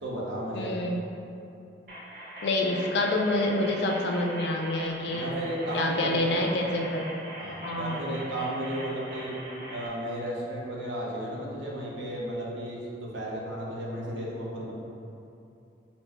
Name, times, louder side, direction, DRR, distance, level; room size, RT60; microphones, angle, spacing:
voice 1, 0.0-0.7 5.1-6.4 7.4-9.3 9.7-14.7, right 1 dB, 85° right, -4 dB, 0.8 m, -34 dB
voice 2, 0.5-0.9 2.4-5.3 5.7-7.1 7.6-8.0, left 2 dB, 65° left, 1 dB, 0.4 m, -27 dB
sound 1, 1.9-9.9, right 1 dB, 55° right, 0.7 m, -42 dB
4.2 x 2.2 x 4.2 m, 2.7 s
head